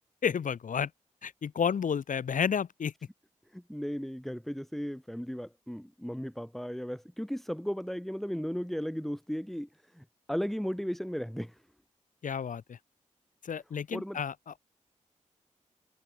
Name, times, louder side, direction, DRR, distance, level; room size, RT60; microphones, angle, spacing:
voice 1, 0.2-0.9 1.2-2.9 12.2-12.8 13.4-14.6, left 7 dB, 80° left, 2.8 m, -31 dB
voice 2, 3.5-11.6 13.9-14.2, equal, ahead, 2.8 m, -36 dB
cardioid pair, 50°, 13 cm